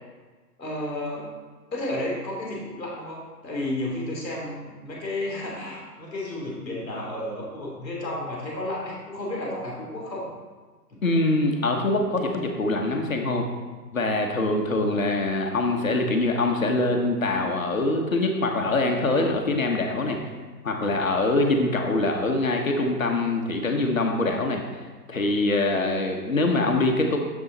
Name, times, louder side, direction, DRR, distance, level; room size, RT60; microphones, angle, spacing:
voice 1, 0.6-1.3 1.7-10.3 10.9-11.0, left 1 dB, ahead, -30 dB, 0.9 m, -32 dB
voice 2, 11.0-13.5 13.9-20.2 20.6-24.6 25.1-27.2, left 2 dB, 55° left, 2 dB, 1.0 m, -24 dB
7.0 x 6.4 x 4.0 m, 1.4 s
hypercardioid pair, 175°, 50 cm